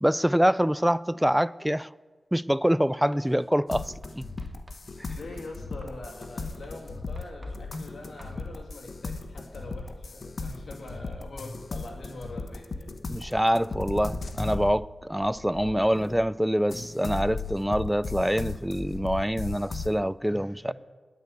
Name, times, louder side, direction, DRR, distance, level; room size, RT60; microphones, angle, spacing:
voice 1, 0.0-1.9 2.3-4.2 13.1-20.7, equal, 5° right, 0.4 m, -25 dB
Writing, 3.1-3.5 4.0-8.4, right 1 dB, 30° right, 1.3 m, -54 dB
sound 1, 3.7-16.3 16.7-20.0, left 3 dB, 70° left, 0.9 m, -37 dB
voice 2, 5.1-12.9 20.2-20.7, left 2 dB, 85° left, 2.4 m, -43 dB
10.5 x 9.5 x 8.3 m
cardioid pair, 50°, 0 cm